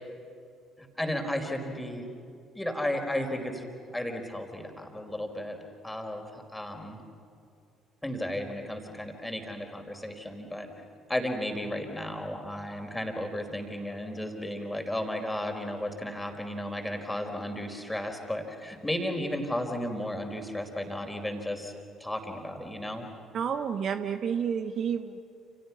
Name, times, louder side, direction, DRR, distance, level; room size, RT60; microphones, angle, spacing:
voice 1, 0.8-2.1 2.5-5.6 5.8-7.0 8.0-10.7 11.1-21.7 22.0-23.1, left 1 dB, 5° left, 4 dB, 4.8 m, -34 dB
voice 2, 23.3-25.2, right 7 dB, 45° right, 10 dB, 1.0 m, -30 dB
30.0 x 30.0 x 6.0 m, 2.5 s
figure-of-eight pair, 50°, 0 cm